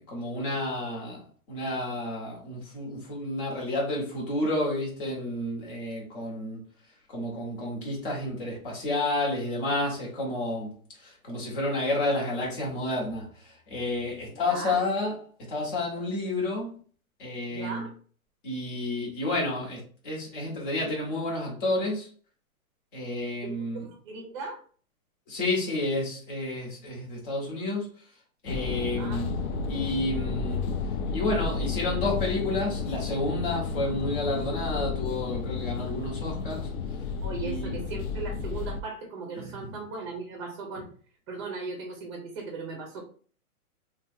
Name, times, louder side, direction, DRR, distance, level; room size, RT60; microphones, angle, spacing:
voice 1, 0.0-6.6 7.1-10.7 11.0-16.7 17.2-17.9 18.4-22.1 22.9-23.9 25.3-27.9 28.4-29.4 29.7-30.6 31.1-36.7 37.4-37.7 39.4-39.6, left 2 dB, 35° left, 1.3 m, -30 dB
voice 2, 14.5-14.8 17.5-17.9 23.4-24.6 29.0-29.2 37.2-40.9 41.3-43.0, right 4 dB, 20° right, 0.7 m, -38 dB
sound 1, 28.5-38.8, left 5 dB, 70° left, 0.5 m, -32 dB
2.8 x 2.5 x 2.6 m
hypercardioid pair, 165°, 43 cm